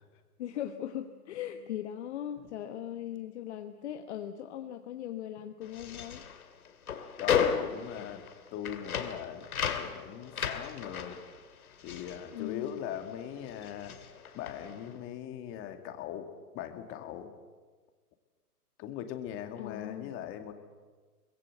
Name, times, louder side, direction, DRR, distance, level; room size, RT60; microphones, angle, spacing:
voice 1, 0.4-6.3 12.3-12.8 19.6-20.1, left 11 dB, 45° left, 7 dB, 1.3 m, -39 dB
sound 1, 5.6-13.1 13.4-14.9, left 7 dB, 65° left, 2.5 m, -34 dB
voice 2, 7.2-8.2 8.5-11.2 11.8-14.0 14.3-17.3 18.8-20.5, left 10 dB, 25° left, 7 dB, 2.3 m, -40 dB
23.5 x 21.0 x 8.0 m, 1.4 s
hypercardioid pair, 125°, 47 cm